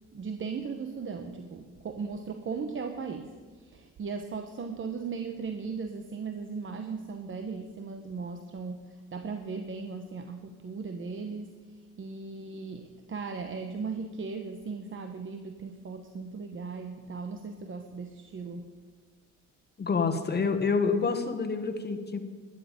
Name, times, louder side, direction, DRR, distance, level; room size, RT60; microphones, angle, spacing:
voice 1, 0.1-18.7, right 5 dB, 40° right, 6 dB, 1.0 m, -37 dB
voice 2, 19.8-22.2, left 5 dB, 35° left, 6 dB, 1.5 m, -27 dB
12.5 x 10.5 x 5.2 m, 1.5 s
cardioid pair, 90°, 30 cm